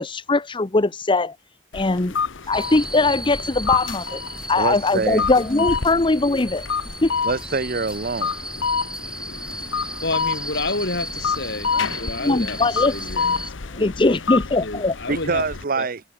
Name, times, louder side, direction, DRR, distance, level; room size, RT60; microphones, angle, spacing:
voice 1, 0.0-1.3 1.7-2.1 2.5-4.2 4.5-6.7 7.0-7.1 11.7-11.8 12.2-12.9 13.7-14.9, left 3 dB, 25° left, 0.8 m, -20 dB
sound 1, 1.7-15.6, left 5 dB, 90° left, 1.0 m, -29 dB
sound 2, 2.5-13.5, right 1 dB, 5° right, 3.0 m, -35 dB
voice 2, 4.6-5.3 7.2-8.3 15.1-16.0, right 4 dB, 50° right, 0.9 m, -25 dB
voice 3, 10.0-13.4 13.8-15.4 15.7-15.9, left 2 dB, 60° left, 5.1 m, -30 dB
head